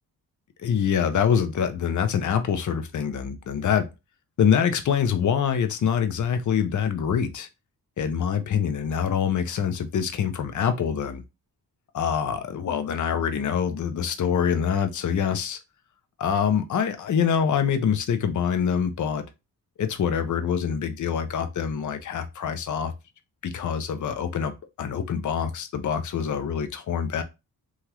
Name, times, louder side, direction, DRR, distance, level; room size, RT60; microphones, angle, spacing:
voice 1, 0.6-3.9 4.4-7.5 8.0-11.2 11.9-15.6 16.2-19.3 19.8-22.9 23.4-24.5 24.8-27.2, left 7 dB, 50° left, 0.6 m, -25 dB
2.9 x 2.4 x 2.9 m
cardioid pair, 65°, 38 cm